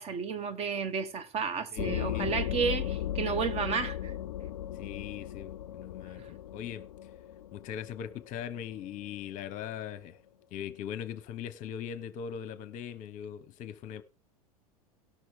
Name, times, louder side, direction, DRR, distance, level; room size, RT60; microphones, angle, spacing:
voice 1, 0.0-4.1, right 6 dB, 30° right, 1.2 m, -32 dB
voice 2, 1.7-2.5 4.7-6.9 7.5-10.2 10.5-14.0, left 9 dB, 40° left, 0.8 m, -40 dB
sound 1, 1.8-9.1, left 11 dB, 65° left, 0.4 m, -37 dB
18.0 x 6.2 x 3.6 m
figure-of-eight pair, 85°, 19 cm